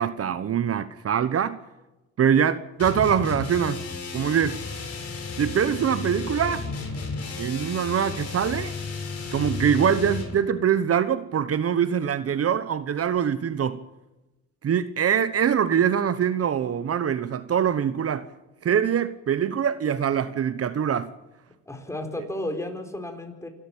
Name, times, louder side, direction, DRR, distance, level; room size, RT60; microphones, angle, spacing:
voice 1, 0.0-1.6 2.2-3.8 4.1-4.6 5.4-6.6 7.4-8.7 9.3-13.8 14.6-18.3 18.6-21.1 22.2-22.3, right 8 dB, 50° right, 1.1 m, -23 dB
sound 1, 2.8-10.4, left 4 dB, 50° left, 7.8 m, -33 dB
voice 2, 21.7-23.5, left 1 dB, 10° left, 4.7 m, -33 dB
27.5 x 12.5 x 8.7 m
cardioid pair, 90°, 30 cm